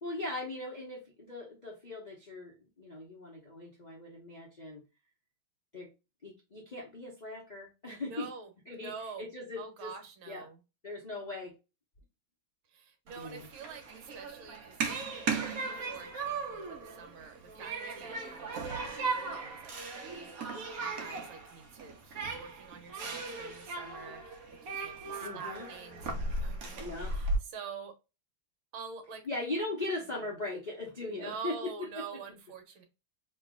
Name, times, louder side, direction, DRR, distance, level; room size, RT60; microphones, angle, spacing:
voice 1, 0.0-4.8 5.7-5.9 6.2-8.3 8.7-8.9 9.2-9.9 10.3-10.5 10.8-11.6 13.1-13.5 25.2-25.7 26.8-27.1 29.2-32.2, left 2 dB, 70° left, -2 dB, 0.4 m, -39 dB
voice 2, 8.1-9.3 9.6-10.6 12.7-15.0 15.3-20.5 20.8-28.0 28.7-29.3 30.2-30.3 31.1-32.8, right 6 dB, 75° right, 6 dB, 1.7 m, -47 dB
Human group actions, 13.1-27.4, right 3 dB, 55° right, 1.0 m, -37 dB
3.2 x 3.0 x 3.6 m, 0.28 s
omnidirectional pair, 2.3 m